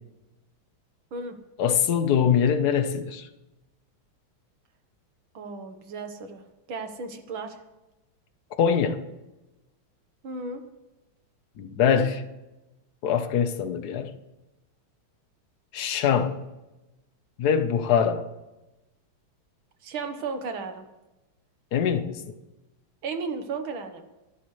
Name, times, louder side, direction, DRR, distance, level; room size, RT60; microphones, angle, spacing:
voice 1, 1.6-3.3 8.6-9.0 11.6-12.3 13.0-14.2 15.7-16.4 17.4-18.2 21.7-22.2, left 7 dB, 55° left, 8 dB, 1.5 m, -23 dB
voice 2, 5.3-6.4 6.7-7.6 10.2-10.6 19.8-20.8 23.0-24.1, right 4 dB, 75° right, 7 dB, 2.1 m, -34 dB
26.0 x 12.0 x 3.3 m, 1.0 s
omnidirectional pair, 2.3 m